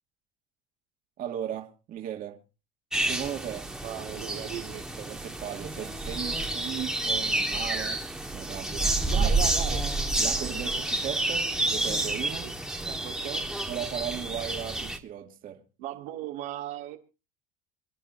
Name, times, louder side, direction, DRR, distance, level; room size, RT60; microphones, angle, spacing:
voice 1, 1.2-2.4 3.0-3.7 5.0-8.0 8.3-9.3 10.2-12.5 13.7-15.6, right 10 dB, 50° right, 2.2 m, -37 dB
sound 1, 2.9-15.0, right 2 dB, 5° right, 1.7 m, -29 dB
voice 2, 3.8-4.8 9.0-9.9 12.4-12.5 12.8-13.5 15.8-17.0, right 12 dB, 75° right, 2.3 m, -37 dB
27.5 x 10.0 x 2.7 m
supercardioid pair, 115°, 18 cm